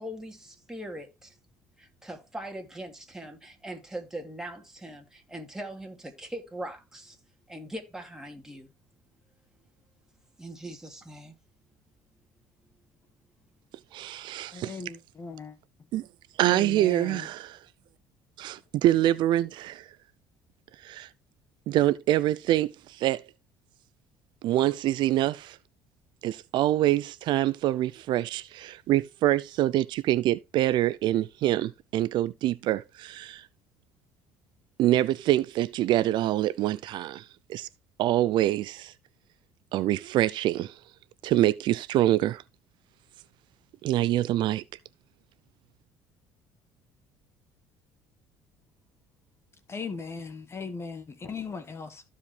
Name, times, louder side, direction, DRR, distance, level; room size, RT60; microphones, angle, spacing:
voice 1, 0.0-1.4 1.8-7.2 7.5-8.7 10.4-11.3, right 1 dB, 5° right, 3.1 m, -41 dB
voice 2, 13.9-14.8 15.9-16.0 16.4-17.6 18.4-19.9 20.8-21.1 21.7-23.2 24.4-25.6 26.2-33.5 34.8-37.7 38.0-38.9 39.7-40.8 41.2-42.4 43.8-44.6, right 14 dB, 65° right, 0.5 m, -25 dB
voice 3, 14.5-15.6 16.5-17.3 49.7-52.0, left 4 dB, 30° left, 1.5 m, -38 dB
14.5 x 5.1 x 3.3 m
supercardioid pair, 90°, 8 cm